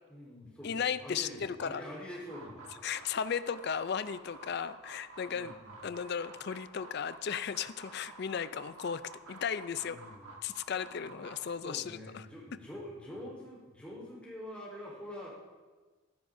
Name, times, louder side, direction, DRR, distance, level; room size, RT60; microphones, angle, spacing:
voice 1, 0.1-2.6 5.3-5.8 9.8-10.3 11.0-15.3, left 1 dB, 5° left, -5 dB, 3.9 m, -46 dB
voice 2, 0.6-1.8 2.8-5.5 5.8-9.0 9.3-10.0 10.4-12.2, left 7 dB, 50° left, 14 dB, 0.4 m, -35 dB
sound 1, 2.2-11.5, right 3 dB, 85° right, 1.4 m, -51 dB
16.5 x 14.0 x 2.7 m, 1.4 s
head